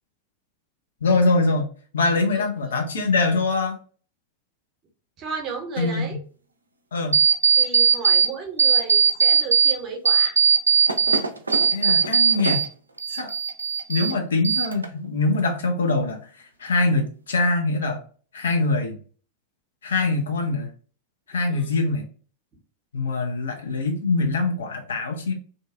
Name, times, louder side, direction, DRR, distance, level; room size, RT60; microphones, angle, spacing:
voice 1, 1.0-1.7 1.9-3.8 5.8-6.0 6.9-7.2 11.7-12.6 13.1-13.3 13.9-16.2 16.6-18.0 18.3-19.0 19.8-20.7 21.3-22.0 22.9-25.3, left 3 dB, 65° left, 4 dB, 0.5 m, -23 dB
voice 2, 5.2-6.2 7.6-10.3 21.5-21.7, right 5 dB, 35° right, 3 dB, 0.7 m, -33 dB
sound 1, 7.1-8.3 8.6-9.7 10.1-12.7 13.0-14.1 14.4-15.1, right 7 dB, 80° right, 0.3 m, -19 dB
2.6 x 2.3 x 2.3 m, 0.41 s
figure-of-eight pair, 90°, 0 cm